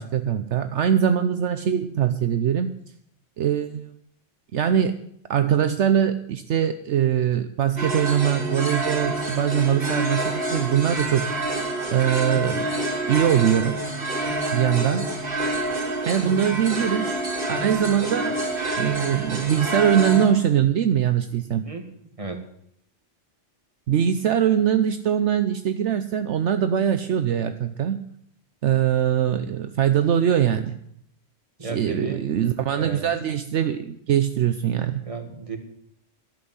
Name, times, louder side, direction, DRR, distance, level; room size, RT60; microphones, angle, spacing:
voice 1, 0.0-2.7 3.4-4.0 4.5-4.9 5.3-11.3 11.9-12.7 13.1-13.8 14.5-15.1 16.1-17.1 17.5-18.4 18.8-21.7 23.9-28.0 28.6-30.8 31.6-35.0, right 9 dB, 70° right, 9 dB, 1.0 m, -22 dB
sound 1, 7.8-20.3, right 1 dB, 45° right, 3.7 m, -27 dB
voice 2, 31.6-32.3 32.7-33.1 35.0-35.6, right 3 dB, 25° right, 4 dB, 2.0 m, -34 dB
12.0 x 8.0 x 9.5 m, 0.70 s
omnidirectional pair, 1.3 m